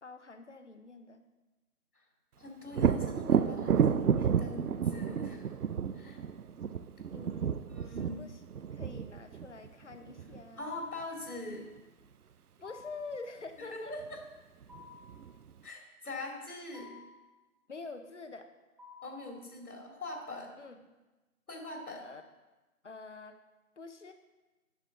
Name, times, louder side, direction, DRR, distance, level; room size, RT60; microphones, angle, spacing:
voice 1, 0.0-1.2 6.0-6.3 7.1-7.6 7.9-8.5 8.7-10.8 12.6-13.9 17.7-18.5 20.6-20.8 21.9-22.2 22.8-23.4 23.8-24.1, left 3 dB, 55° left, 8 dB, 0.9 m, -46 dB
voice 2, 2.4-5.5 5.9-6.2 7.7-8.2 10.6-11.6 13.7-14.2 15.6-17.0 19.0-20.5 21.5-22.0, left 2 dB, 85° left, 0 dB, 2.6 m, -42 dB
Thunder, 2.7-10.4 14.0-14.1 14.6-15.5, right 7 dB, 85° right, 0.6 m, -31 dB
sound 1, 10.6-11.1 12.6-13.1 14.7-15.2 16.7-17.2 18.8-19.3, left 5 dB, 20° right, 2.2 m, -52 dB
10.0 x 6.7 x 3.7 m, 1.1 s
figure-of-eight pair, 165°, 44 cm